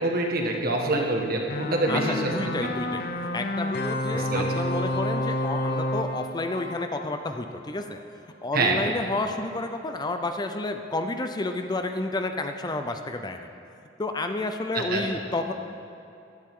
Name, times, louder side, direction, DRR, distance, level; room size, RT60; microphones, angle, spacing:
voice 1, 0.0-2.3 4.1-4.4 8.5-8.9 14.7-15.0, right 2 dB, 55° right, 1 dB, 1.5 m, -25 dB
sound 1, 1.5-7.6, left 1 dB, 55° left, 0.8 m, -30 dB
voice 2, 1.9-3.0 3.3-8.0 8.4-13.5 14.0-15.5, left 2 dB, 20° left, 6 dB, 0.5 m, -30 dB
15.5 x 11.5 x 3.7 m, 2.6 s
head